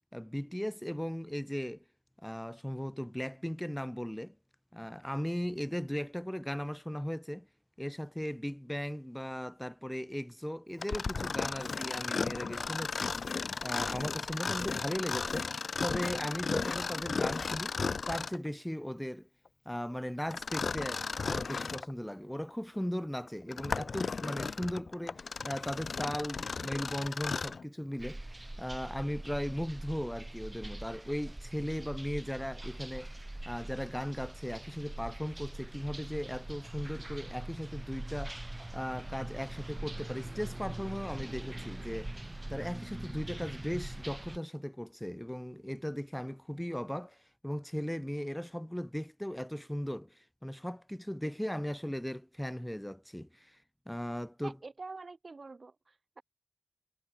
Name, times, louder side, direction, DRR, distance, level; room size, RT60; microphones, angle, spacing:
voice 1, 0.0-1.8 2.2-4.4 4.7-7.5 7.8-13.1 13.6-15.5 15.8-17.8 18.1-19.3 19.7-28.2 28.6-33.2 33.5-42.1 42.5-53.6 53.9-54.6, equal, 5° left, 0.3 m, -37 dB
Mechanisms, 10.8-18.5 20.3-21.9 22.5-22.6 23.3-27.6, left 4 dB, 85° left, 0.5 m, -35 dB
sound 1, 28.0-44.4, right 1 dB, 25° right, 1.1 m, -43 dB
voice 2, 54.4-56.2, right 3 dB, 65° right, 0.9 m, -46 dB
cardioid pair, 45°, 0 cm